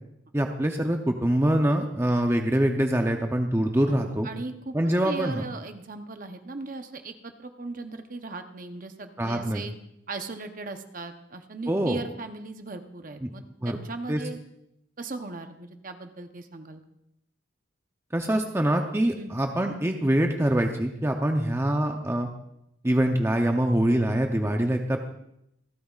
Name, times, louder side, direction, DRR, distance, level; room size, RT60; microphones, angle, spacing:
voice 1, 0.3-4.3 4.7-5.4 9.2-9.6 11.7-12.0 13.2-13.3 13.6-13.8 14.1-14.2 18.1-22.3 22.8-25.0, right 1 dB, 10° right, 3 dB, 0.6 m, -24 dB
voice 2, 3.9-9.7 10.1-14.4 15.0-16.8 19.2-19.3, right 3 dB, 40° right, 7 dB, 0.8 m, -38 dB
26.5 x 9.0 x 2.4 m, 0.80 s
head